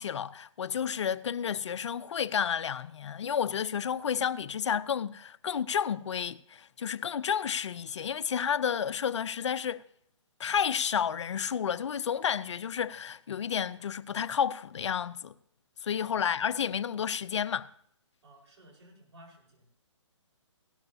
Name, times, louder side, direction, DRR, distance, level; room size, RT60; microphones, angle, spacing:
voice 1, 0.0-9.8 10.4-15.3 15.8-17.7, left 8 dB, 65° left, 0.6 m, -31 dB
voice 2, 18.2-19.7, right 1 dB, 60° right, 4.5 m, -55 dB
17.0 x 12.0 x 2.7 m
hypercardioid pair, 155°, 16 cm